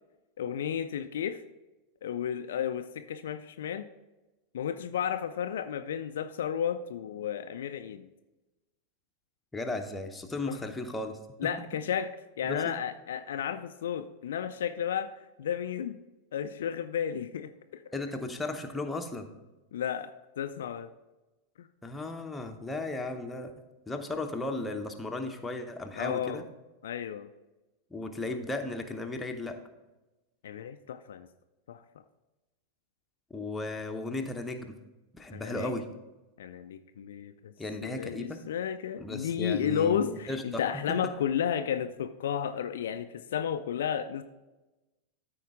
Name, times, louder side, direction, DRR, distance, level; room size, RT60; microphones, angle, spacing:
voice 1, 0.4-1.4 2.0-3.9 4.5-8.1 10.4-10.6 11.4-16.0 16.3-17.9 19.7-20.9 21.6-21.7 26.0-26.4 26.8-27.3 30.4-31.3 31.7-31.8 35.3-35.7 36.4-37.5 37.8-44.2, left 8 dB, 60° left, 9 dB, 0.4 m, -33 dB
voice 2, 9.5-11.5 12.4-12.7 17.9-19.3 21.8-23.5 23.9-26.4 27.9-29.6 33.3-34.8 35.1-35.9 37.6-38.4 39.0-41.1, left 2 dB, 10° left, 4 dB, 0.9 m, -35 dB
13.5 x 4.5 x 3.6 m, 1.1 s
figure-of-eight pair, 90°, 0 cm